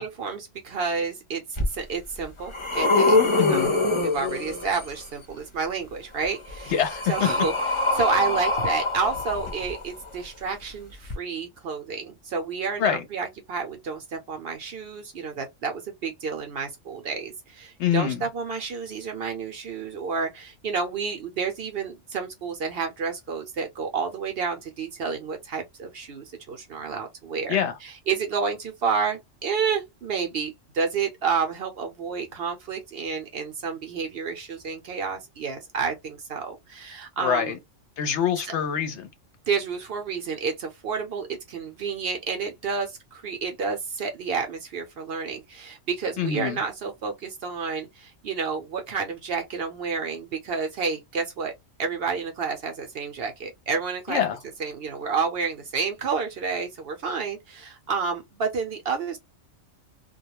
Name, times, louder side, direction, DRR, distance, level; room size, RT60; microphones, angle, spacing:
voice 1, 0.0-3.2 3.5-3.7 4.0-6.7 7.1-7.5 7.9-27.6 27.8-37.6 38.5-38.6 39.5-51.5 51.8-54.2 54.6-59.2, right 5 dB, 60° right, 0.7 m, -30 dB
sound 1, 1.6-1.7 2.2-5.0 6.2-10.1 11.0-11.1, left 3 dB, 30° left, 0.6 m, -24 dB
voice 2, 3.4-3.7 6.7-7.1 12.8-13.0 17.8-18.2 27.5-27.7 37.2-37.6 38.0-39.1 46.2-46.6 54.1-54.4, left 8 dB, 70° left, 0.8 m, -25 dB
2.2 x 2.1 x 2.9 m
omnidirectional pair, 1.3 m